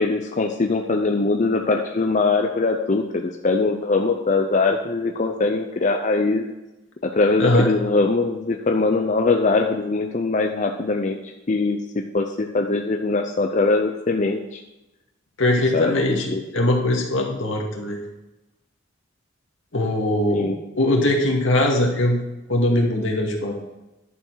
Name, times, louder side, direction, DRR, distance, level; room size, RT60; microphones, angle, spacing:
voice 1, 0.0-6.5 7.0-11.2 11.5-11.8 12.1-14.6 15.7-16.4 20.3-20.6, left 3 dB, 40° left, 4 dB, 0.6 m, -22 dB
voice 2, 15.4-18.1 19.7-20.5 20.7-22.2 22.5-23.6, left 1 dB, 75° left, 0 dB, 2.0 m, -21 dB
11.0 x 7.0 x 4.7 m, 1.0 s
head